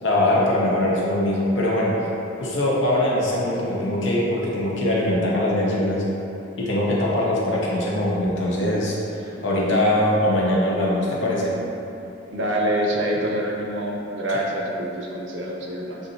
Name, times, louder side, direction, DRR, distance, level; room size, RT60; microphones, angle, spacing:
voice 1, 0.0-1.9 2.4-6.0 6.6-11.5 14.3-14.4, left 1 dB, 80° left, -5 dB, 0.9 m, -22 dB
voice 2, 12.3-16.0, right 1 dB, 75° right, -2 dB, 0.7 m, -26 dB
7.0 x 2.7 x 2.5 m, 3.0 s
head